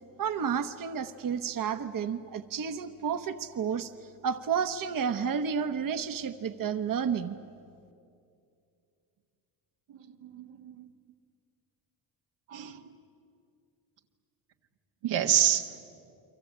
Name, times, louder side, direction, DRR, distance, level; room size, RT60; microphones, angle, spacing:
voice 1, 0.2-3.9 4.2-7.4, right 7 dB, 50° right, 9 dB, 1.1 m, -31 dB
voice 2, 9.9-10.9 12.5-12.9 15.0-15.7, right 10 dB, 85° right, 4 dB, 1.7 m, -28 dB
29.5 x 23.5 x 8.7 m, 2.5 s
cardioid pair, 95°, 44 cm